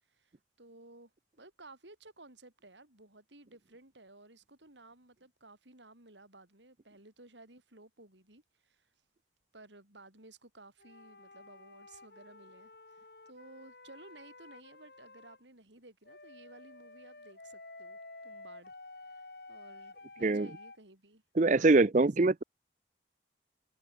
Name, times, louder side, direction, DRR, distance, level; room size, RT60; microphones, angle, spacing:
voice 1, 0.1-1.1 1.4-8.9 9.5-18.7 19.0-21.2 21.5-22.1, right 2 dB, 80° right, 6.5 m, -56 dB
sound 1, 10.8-15.4 16.0-20.8, left 2 dB, 60° left, 4.1 m, -52 dB
voice 2, 21.4-22.4, right 3 dB, 40° right, 0.6 m, -24 dB
head